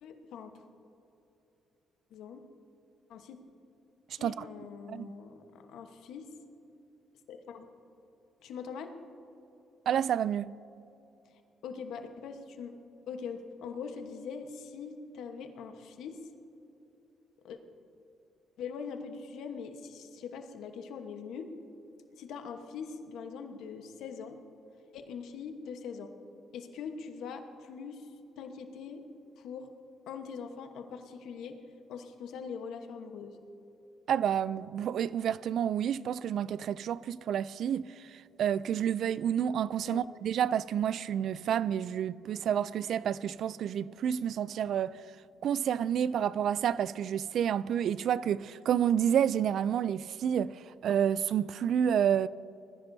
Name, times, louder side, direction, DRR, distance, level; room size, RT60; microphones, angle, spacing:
voice 1, 0.0-0.5 2.1-2.4 3.1-3.4 4.2-6.3 7.3-7.7 8.4-8.9 11.6-12.7 13.1-16.2 17.4-17.6 18.6-21.5 22.1-24.4 24.9-26.1 26.5-28.1 28.4-29.0 29.4-29.7 30.1-31.6 31.9-33.4 39.9-40.0, left 6 dB, 85° left, 1.1 m, -42 dB
voice 2, 9.9-10.5 34.1-45.0 45.4-52.3, right 9 dB, 70° right, 0.3 m, -29 dB
20.5 x 14.5 x 2.7 m
cardioid pair, 90°, 0 cm